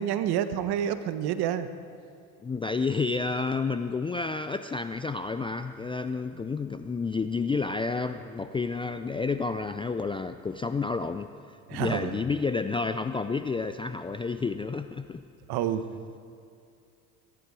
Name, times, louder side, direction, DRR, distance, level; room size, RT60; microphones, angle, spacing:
voice 1, 0.0-1.7 11.7-12.1 15.5-15.9, right 10 dB, 60° right, 11 dB, 1.1 m, -28 dB
voice 2, 2.4-15.2, left 4 dB, 15° left, 9 dB, 0.3 m, -30 dB
23.0 x 11.0 x 4.8 m, 2.5 s
supercardioid pair, 85°, 44 cm